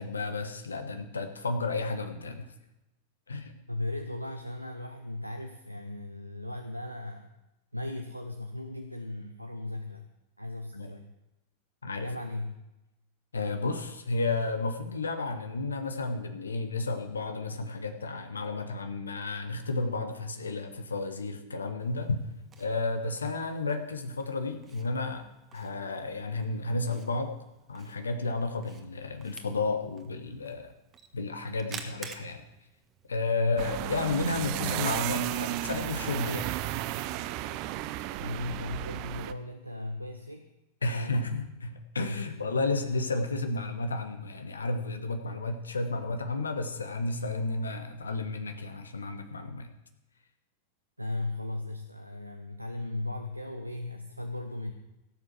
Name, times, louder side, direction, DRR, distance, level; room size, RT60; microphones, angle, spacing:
voice 1, 0.0-2.5 3.3-3.5 10.7-10.9 11.8-12.1 13.3-22.2 22.6-25.2 25.5-27.4 27.7-30.7 31.1-32.5 33.1-36.6 40.8-49.7, left 3 dB, 75° left, 7 dB, 1.2 m, -32 dB
voice 2, 3.7-7.3 7.7-10.1 10.4-11.1 12.0-12.6 33.3-33.7 38.2-40.5 40.9-41.4 42.1-42.3 51.0-54.7, left 2 dB, 90° right, 6 dB, 0.8 m, -37 dB
Camera, 21.8-33.8, right 5 dB, 25° right, 1.5 m, -51 dB
sound 1, 33.6-39.3, right 15 dB, 45° right, 0.6 m, -33 dB
17.0 x 7.5 x 6.2 m, 0.95 s
figure-of-eight pair, 90°, 0 cm